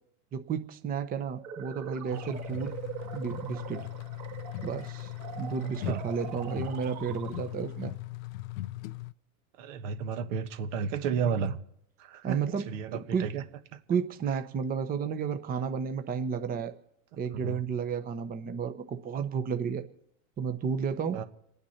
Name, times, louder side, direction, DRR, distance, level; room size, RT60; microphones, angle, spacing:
voice 1, 0.3-2.7 3.1-3.8 4.6-7.9 12.2-12.7 12.9-13.3 13.9-16.7 17.2-19.9 20.4-21.2, right 6 dB, 20° right, 0.9 m, -32 dB
sound 1, 1.3-7.8, right 9 dB, 40° right, 2.3 m, -43 dB
sound 2, 2.1-9.1, left 17 dB, 70° left, 0.6 m, -39 dB
voice 2, 9.6-11.6 12.0-12.4 12.7-13.4 17.4-17.6 21.1-21.2, right 6 dB, 60° right, 1.4 m, -32 dB
27.5 x 9.5 x 4.3 m
hypercardioid pair, 115°, 43 cm